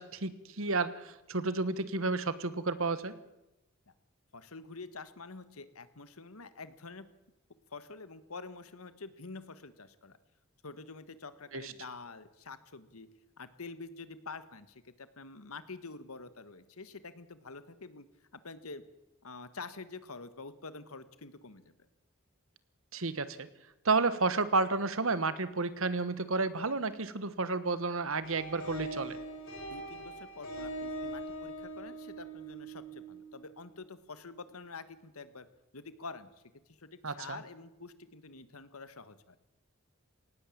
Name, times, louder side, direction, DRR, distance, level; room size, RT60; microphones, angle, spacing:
voice 1, 0.0-3.1 11.5-11.7 22.9-23.5 23.8-29.2 37.0-37.4, right 3 dB, 70° right, 14 dB, 1.3 m, -31 dB
voice 2, 4.3-7.1 7.7-10.2 10.6-13.1 13.4-18.1 18.3-18.8 19.2-21.8 29.7-35.5 35.7-36.3 36.7-39.4, left 4 dB, 80° left, 13 dB, 1.5 m, -47 dB
sound 1, 28.2-33.7, right 2 dB, 65° left, 4.0 m, -42 dB
18.0 x 17.0 x 8.6 m, 0.94 s
head